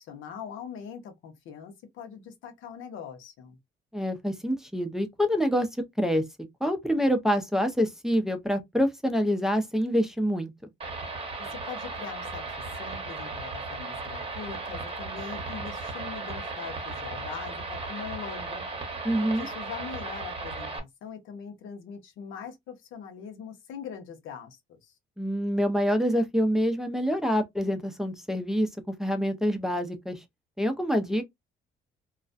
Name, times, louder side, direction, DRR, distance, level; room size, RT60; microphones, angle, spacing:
voice 1, 0.0-3.6 11.4-12.5 12.8-18.6 19.2-24.9, left 7 dB, 90° left, 0.7 m, -42 dB
voice 2, 3.9-5.7 6.0-6.2 6.6-10.7 19.0-19.5 25.2-30.2 30.6-31.2, equal, ahead, 0.5 m, -26 dB
sound 1, 10.8-20.8, right 3 dB, 30° right, 0.9 m, -36 dB
2.4 x 2.1 x 2.4 m
cardioid pair, 90°, 20 cm